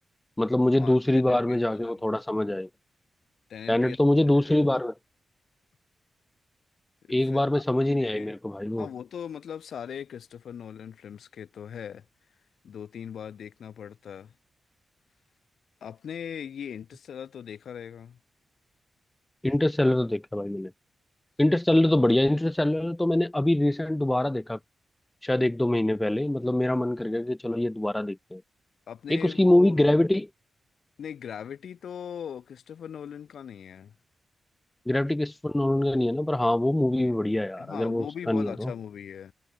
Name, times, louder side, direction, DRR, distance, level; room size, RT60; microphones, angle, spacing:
voice 1, 0.4-2.7 3.7-4.9 7.1-8.9 19.4-20.7 21.4-24.6 25.2-28.4 29.1-30.3 34.9-38.7, left 1 dB, 10° left, 2.0 m, -24 dB
voice 2, 1.3-1.6 1.8-1.9 3.5-4.0 4.4-4.6 7.0-7.6 7.9-8.3 8.8-12.1 12.6-14.3 15.8-18.2 28.9-29.8 31.0-33.9 37.0-37.2 37.6-39.3, left 8 dB, 80° left, 5.6 m, -40 dB
wide cardioid pair, 110°, 0 cm